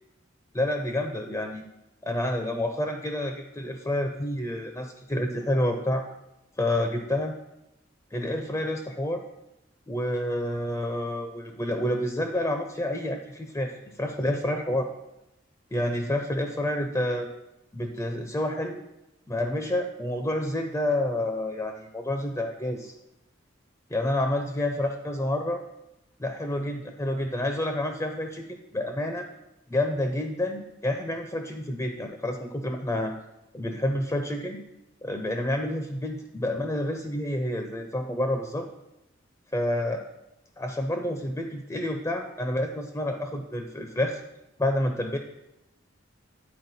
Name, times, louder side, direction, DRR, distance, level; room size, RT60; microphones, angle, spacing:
voice 1, 0.5-1.6 2.0-6.1 6.6-7.3 8.1-9.2 9.9-14.9 15.7-17.3 17.7-18.8 19.3-22.9 23.9-25.6 26.2-28.4 28.7-29.3 29.7-33.1 33.5-34.6 35.0-38.7 39.5-40.0 40.6-44.2 44.6-45.2, left 1 dB, 15° left, 5 dB, 0.4 m, -29 dB
9.5 x 4.2 x 4.1 m, 0.90 s
head